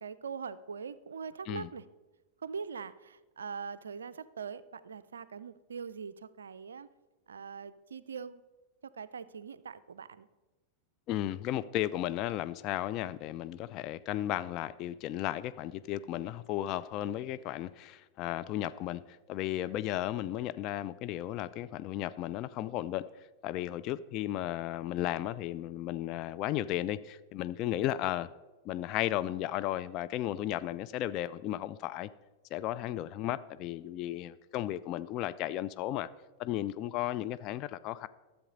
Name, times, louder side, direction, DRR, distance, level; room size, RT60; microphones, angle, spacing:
voice 1, 0.0-1.9 2.4-6.9 7.3-8.4 8.8-10.3, right 6 dB, 70° right, 0.4 m, -42 dB
voice 2, 11.1-19.0 19.3-23.1 23.4-28.3 28.6-32.1 32.5-36.1 36.4-38.1, left 13 dB, 40° left, 0.3 m, -34 dB
13.0 x 7.1 x 3.9 m
figure-of-eight pair, 90°, 0 cm